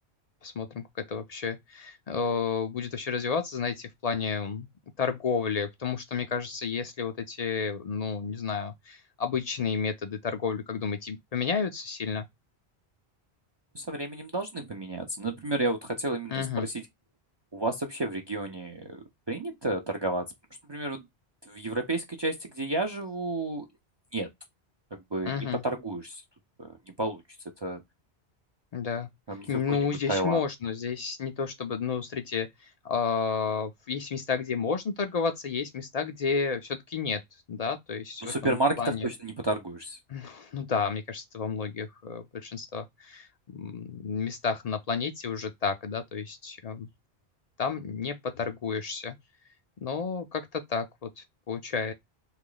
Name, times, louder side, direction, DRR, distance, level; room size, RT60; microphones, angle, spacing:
voice 1, 0.4-4.7 5.0-12.3 16.3-16.7 25.2-25.6 28.7-29.1 29.5-37.2 37.5-39.1 40.1-46.9 47.6-49.2 49.8-51.9, left 5 dB, 55° left, 0.4 m, -31 dB
voice 2, 13.7-16.8 17.5-20.3 20.7-21.0 21.5-23.7 24.1-24.3 24.9-26.2 26.6-27.2 27.6-27.8 29.3-30.4 38.2-40.0, right 2 dB, 40° right, 0.4 m, -31 dB
2.9 x 2.4 x 3.8 m
omnidirectional pair, 1.1 m